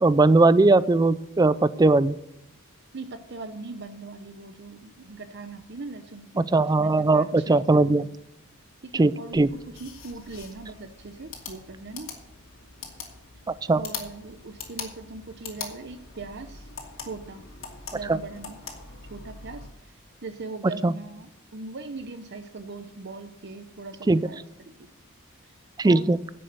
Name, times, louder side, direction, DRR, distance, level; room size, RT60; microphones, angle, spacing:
voice 1, 0.0-2.2 6.4-8.0 8.9-9.5 13.7-13.8 20.8-20.9 24.1-24.2 25.8-26.2, right 2 dB, 15° right, 18 dB, 0.3 m, -19 dB
voice 2, 2.9-8.1 8.8-12.1 13.7-16.7 17.0-17.4 17.9-18.6 19.1-19.9 20.2-24.9 25.8-26.1, right 3 dB, 50° right, 8 dB, 0.7 m, -40 dB
sound 1, 9.3-19.7, left 5 dB, 60° left, 2.5 m, -42 dB
10.5 x 7.7 x 6.8 m, 0.83 s
head